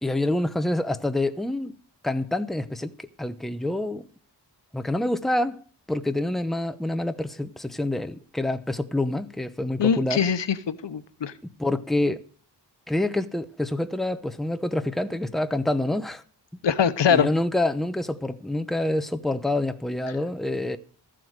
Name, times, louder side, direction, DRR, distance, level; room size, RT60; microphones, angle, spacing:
voice 1, 0.0-1.7 2.0-4.0 4.7-5.6 5.9-10.2 11.4-12.3 12.9-16.2 17.1-20.8, left 1 dB, ahead, 0.8 m, -27 dB
voice 2, 9.8-11.3 16.6-17.3, left 7 dB, 85° left, 1.0 m, -22 dB
14.0 x 7.7 x 6.5 m
wide cardioid pair, 105°, 42 cm